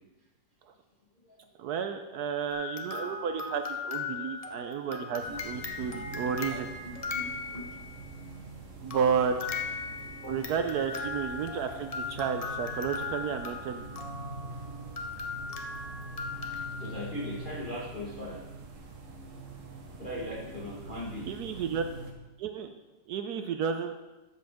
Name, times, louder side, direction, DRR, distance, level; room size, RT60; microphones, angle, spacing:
voice 1, 1.6-6.7 8.8-9.4 10.3-13.8 21.3-21.8 22.4-22.7 23.1-24.0, right 7 dB, 70° right, 7 dB, 1.0 m, -32 dB
sound 1, 2.5-8.0 8.9-17.4, left 4 dB, 75° left, 0.3 m, -38 dB
sound 2, 5.2-22.1, right 2 dB, 50° right, 1.3 m, -44 dB
voice 2, 5.9-6.2 6.5-6.6 6.8-7.2 7.5-7.6 10.2-10.4 16.7-18.4 20.0-21.3, left 1 dB, 30° left, -7 dB, 1.5 m, -39 dB
13.0 x 7.6 x 3.6 m, 1.1 s
omnidirectional pair, 2.0 m